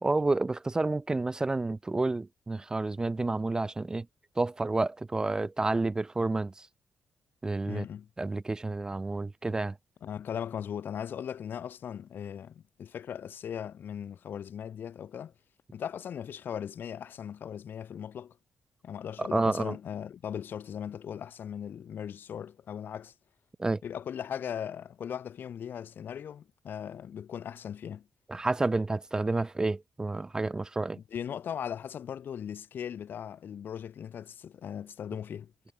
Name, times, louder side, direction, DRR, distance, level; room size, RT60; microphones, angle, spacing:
voice 1, 0.0-4.1 4.4-6.5 7.4-7.9 8.2-9.7 19.2-19.8 23.6-23.8 28.3-31.0, right 2 dB, 20° right, 0.3 m, -29 dB
voice 2, 7.6-8.1 10.0-15.3 15.7-18.4 18.8-23.1 23.8-28.1 30.9-35.5, left 8 dB, 60° left, 0.6 m, -38 dB
cardioid pair, 105°, 4 cm